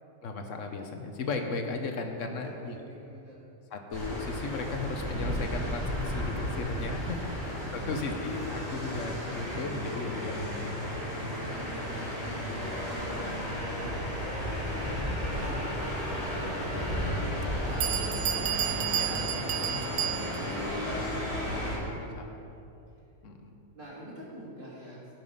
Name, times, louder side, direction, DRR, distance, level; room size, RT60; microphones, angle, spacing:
voice 1, 0.2-2.8 3.7-10.9 13.8-13.9 14.3-14.4 19.0-19.2 21.9-22.4 23.2-23.5, left 3 dB, 75° left, 4 dB, 1.3 m, -36 dB
voice 2, 2.3-3.5 7.7-7.9 11.2-13.9 14.8-15.1 15.4-22.6 23.7-25.1, right 1 dB, 40° right, -6 dB, 3.0 m, -47 dB
sound 1, 3.9-21.8, equal, 30° left, 3.4 m, -33 dB
Bell, 17.4-17.5 17.8-20.6, right 11 dB, 85° right, 1.0 m, -31 dB
16.0 x 6.0 x 5.5 m, 2.7 s
omnidirectional pair, 1.3 m